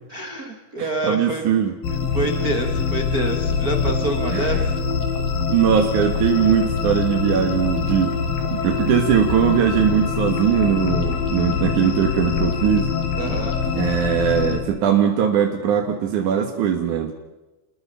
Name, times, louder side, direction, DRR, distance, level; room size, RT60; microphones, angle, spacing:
voice 1, 0.1-1.6 2.1-4.7 13.2-13.6, right 2 dB, 85° right, 3 dB, 0.8 m, -27 dB
voice 2, 0.8-1.7 4.3-4.6 5.5-8.2 8.5-12.9 13.7-17.1, right 8 dB, 60° right, 3 dB, 2.4 m, -20 dB
sound 1, 1.8-14.6, left 6 dB, 60° left, 3.6 m, -24 dB
29.5 x 21.0 x 5.6 m, 1.1 s
omnidirectional pair, 4.9 m